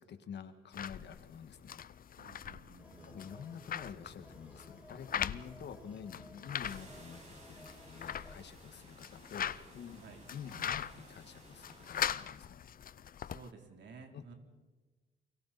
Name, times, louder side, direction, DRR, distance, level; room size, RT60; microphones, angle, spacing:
voice 1, 0.0-1.9 3.1-10.0 10.3-12.7 14.1-14.2, left 7 dB, 60° left, 9 dB, 1.9 m, -48 dB
sound 1, 0.7-13.5, left 9 dB, 45° left, 0.6 m, -42 dB
voice 2, 2.2-3.2 10.0-10.3 13.2-14.3, right 4 dB, 65° right, 3 dB, 3.6 m, -54 dB
sound 2, 2.8-8.4, equal, 5° right, 6.1 m, -57 dB
Knigdoms of the Night (A Virtual Walk-Through of the Caves), 6.6-12.0, right 2 dB, 35° right, 6.5 m, -57 dB
29.5 x 23.0 x 4.3 m, 1.3 s
cardioid pair, 90°, 20 cm